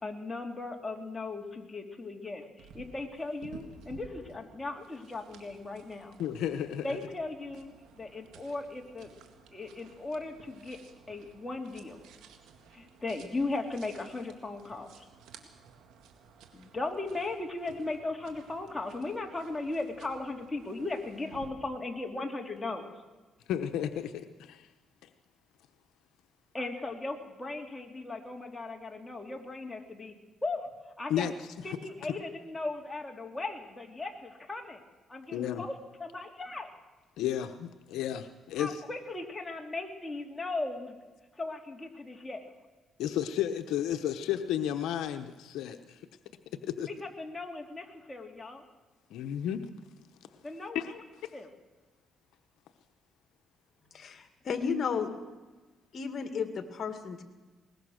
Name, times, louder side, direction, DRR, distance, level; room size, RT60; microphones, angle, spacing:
voice 1, 0.0-6.2 6.8-9.1 9.5-10.8 11.1-12.0 12.7-15.1 16.5-22.8 26.5-30.1 30.4-30.7 31.0-31.3 31.6-34.8 35.1-35.7 36.0-36.7 38.6-41.0 41.4-42.4 46.9-48.6 50.4-50.9 51.3-51.5 53.8-53.9, left 2 dB, 15° left, 2 dB, 3.0 m, -37 dB
sound 1, 2.6-21.5, right 6 dB, 85° right, 2.3 m, -55 dB
voice 2, 6.2-7.0 23.5-24.7 25.0-25.1 31.1-31.8 35.3-35.7 37.2-38.8 43.0-46.1 46.6-46.9 49.1-49.6 50.7-51.3, left 10 dB, 85° left, 8 dB, 0.9 m, -33 dB
voice 3, 53.9-55.1 55.9-57.2, left 6 dB, 55° left, 7 dB, 2.2 m, -33 dB
21.5 x 19.5 x 6.5 m, 1.3 s
cardioid pair, 90°, 0 cm